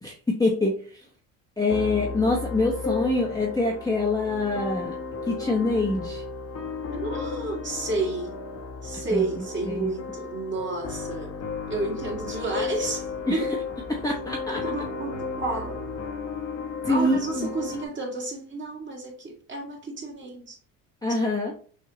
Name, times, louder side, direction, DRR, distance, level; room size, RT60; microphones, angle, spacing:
voice 1, 0.0-0.8 1.6-4.9 5.3-6.2 9.1-9.2 9.6-9.9 13.3-13.5 13.9-14.6 16.9-17.5 21.0-21.5, left 2 dB, 10° left, 1.0 m, -25 dB
sound 1, 1.7-17.9, left 5 dB, 40° left, 1.1 m, -34 dB
voice 2, 6.9-8.3 8.8-11.4 11.7-13.6 14.5-15.8 16.9-20.6, right 3 dB, 30° right, 1.8 m, -31 dB
6.3 x 2.8 x 2.8 m
cardioid pair, 105°, 40 cm